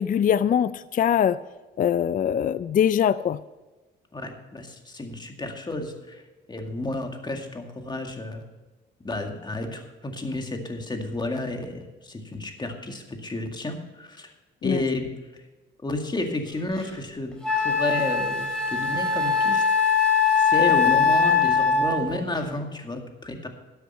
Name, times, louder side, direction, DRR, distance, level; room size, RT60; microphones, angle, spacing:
voice 1, 0.0-1.4 1.8-3.4 14.6-14.8, left 9 dB, 45° left, 16 dB, 0.4 m, -22 dB
voice 2, 4.1-6.2 6.5-8.4 9.0-14.3 14.6-15.1 15.8-19.6 20.4-23.5, left 2 dB, 20° left, 4 dB, 2.1 m, -31 dB
Wind instrument woodwind instrument, 16.8-16.9 17.4-22.1, left 5 dB, 5° left, 3.9 m, -21 dB
12.5 x 8.0 x 5.6 m, 1.2 s
cardioid pair, 90°, 20 cm